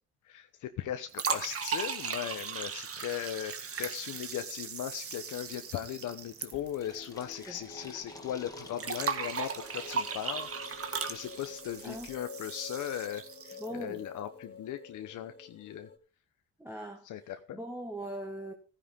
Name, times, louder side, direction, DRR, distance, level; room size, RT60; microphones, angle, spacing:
voice 1, 0.3-3.5 3.8-10.5 10.8-15.9 17.0-17.6, left 10 dB, 80° left, 1.0 m, -38 dB
sound 1, 1.1-7.3 7.6-7.7 8.8-13.8, right 6 dB, 50° right, 1.8 m, -37 dB
Fill (with liquid), 6.5-12.2, left 2 dB, 10° left, 2.3 m, -52 dB
sound 2, 6.8-16.0, left 4 dB, 35° left, 2.0 m, -49 dB
voice 2, 13.6-14.0 16.6-18.5, equal, 10° right, 1.8 m, -41 dB
15.0 x 10.0 x 3.6 m
cardioid pair, 90°, 30 cm